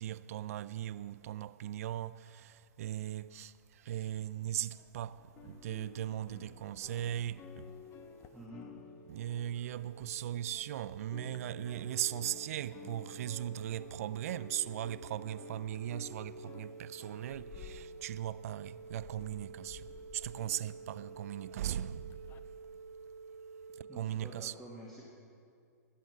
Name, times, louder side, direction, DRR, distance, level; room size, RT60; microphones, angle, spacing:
voice 1, 0.0-7.8 9.1-22.5 23.7-24.5, right 12 dB, 55° right, 0.4 m, -39 dB
sound 1, 5.4-10.7 10.9-22.4, left 8 dB, 25° left, 0.6 m, -54 dB
sound 2, 7.2-24.1, right 5 dB, 85° right, 0.7 m, -51 dB
voice 2, 8.3-8.7 23.9-25.1, right 1 dB, ahead, 1.8 m, -49 dB
21.0 x 7.7 x 4.7 m
hypercardioid pair, 125°, 9 cm